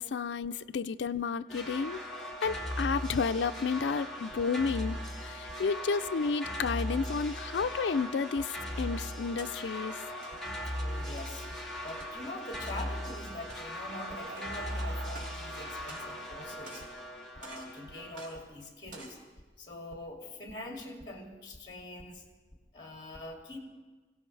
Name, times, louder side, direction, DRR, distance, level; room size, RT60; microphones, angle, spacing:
voice 1, 0.0-2.0 2.4-10.0, left 5 dB, 75° left, 9 dB, 0.4 m, -31 dB
sound 1, 1.5-18.3, equal, 5° left, 2.4 m, -39 dB
sound 2, 9.4-9.5 10.1-10.4 11.1-11.3 11.9-12.1 12.7-12.8 13.4-13.8 14.3-14.4 15.1-15.4 15.8-16.4 16.6-17.0 17.4-17.7 18.1-18.3 18.8-19.2, right 3 dB, 90° right, 3.8 m, -49 dB
voice 2, 10.7-11.5 11.8-16.9 17.3-19.2 19.6-22.2 22.7-23.6, left 1 dB, 25° left, 0 dB, 2.4 m, -44 dB
Laughter / Crowd, 13.7-17.2, right 3 dB, 70° right, 0.8 m, -49 dB
26.0 x 17.0 x 3.3 m, 1.3 s
head